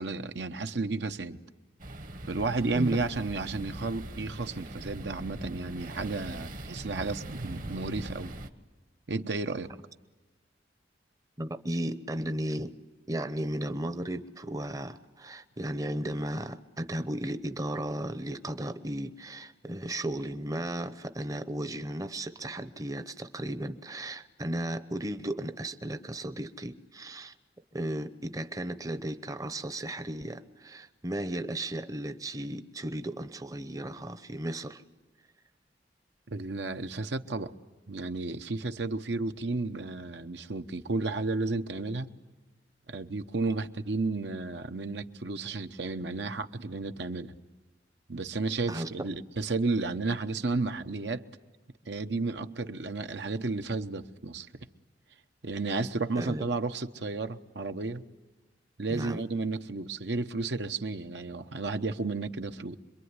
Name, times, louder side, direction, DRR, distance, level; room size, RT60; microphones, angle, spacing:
voice 1, 0.0-1.4 2.3-8.3 9.1-9.7 36.3-37.5 37.9-42.1 42.9-47.3 48.1-51.2 51.9-54.5 55.4-58.0 58.8-62.8, right 3 dB, 70° right, 8 dB, 1.0 m, -32 dB
sound 1, 1.8-8.5, right 1 dB, 50° right, 1.3 m, -41 dB
voice 2, 11.4-12.8 13.1-27.3 27.7-34.8 48.7-48.9 56.2-56.5 58.9-59.3, right 1 dB, 20° right, 12 dB, 0.8 m, -35 dB
27.0 x 23.0 x 9.7 m, 1.2 s
head